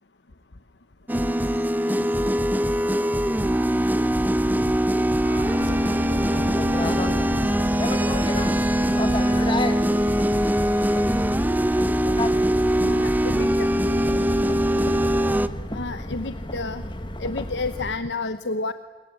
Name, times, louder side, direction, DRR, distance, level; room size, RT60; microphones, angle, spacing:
sound 1, 1.1-15.5, equal, 10° right, 0.9 m, -22 dB
voice 1, 5.2-10.6, right 1 dB, 60° right, 4 dB, 7.2 m, -42 dB
sound 2, 5.5-18.0, left 1 dB, 30° left, 1.8 m, -32 dB
voice 2, 12.8-13.7 15.7-16.9 17.2-18.7, left 3 dB, 85° left, 11 dB, 1.0 m, -30 dB
27.0 x 22.0 x 9.8 m, 1.4 s
head